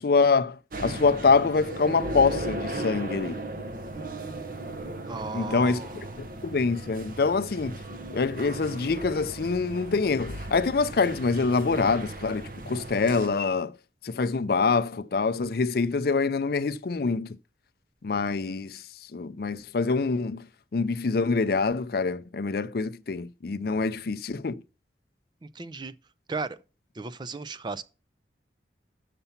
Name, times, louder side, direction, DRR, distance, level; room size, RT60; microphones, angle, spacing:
voice 1, 0.0-3.3 5.3-5.8 6.2-7.8 8.1-13.7 14.0-17.3 18.0-18.8 19.1-20.5 20.7-24.6, left 4 dB, 55° left, 0.5 m, -25 dB
sound 1, 0.7-13.3, right 2 dB, 50° right, 0.9 m, -37 dB
voice 2, 5.1-6.0 25.4-25.9 26.3-26.6 27.0-27.8, right 3 dB, 25° right, 0.4 m, -35 dB
6.9 x 6.8 x 5.7 m
head